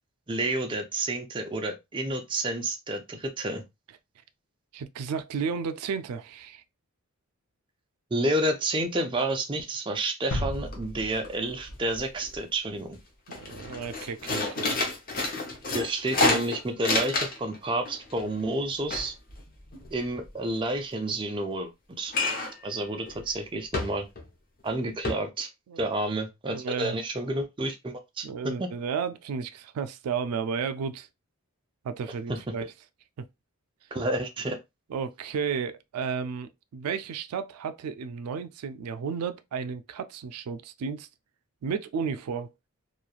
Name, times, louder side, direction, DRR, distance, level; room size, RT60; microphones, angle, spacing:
voice 1, 0.3-3.6 8.1-13.0 15.7-19.1 19.9-21.7 22.0-22.1 22.6-24.1 24.6-25.5 25.8-28.7 32.3-32.4 33.9-34.6, right 1 dB, 20° right, 0.4 m, -30 dB
voice 2, 4.7-6.6 13.3-14.9 25.7-25.8 26.5-27.0 28.2-31.1 31.8-32.7 34.9-41.1 41.6-42.5, right 6 dB, 90° right, 0.3 m, -33 dB
sound 1, 10.3-12.2 12.6-12.7, left 1 dB, 85° left, 0.7 m, -35 dB
sound 2, 10.4-10.5 10.7-11.3 11.6-12.4 12.8-12.9 13.3-17.6 17.9-20.3 22.1-22.7 23.1-23.2 23.7-24.3 24.6-24.7 25.0-25.1, left 2 dB, 40° left, 0.7 m, -29 dB
3.0 x 2.3 x 2.3 m
head